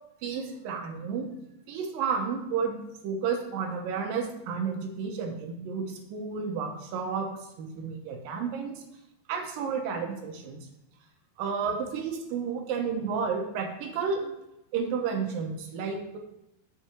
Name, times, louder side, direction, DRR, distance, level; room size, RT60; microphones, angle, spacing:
voice 1, 0.2-1.3 1.7-7.3 7.6-8.8 9.3-10.7 11.4-14.3 14.7-16.2, right 6 dB, 75° right, 3 dB, 2.5 m, -31 dB
6.8 x 5.9 x 5.0 m, 0.85 s
omnidirectional pair, 4.4 m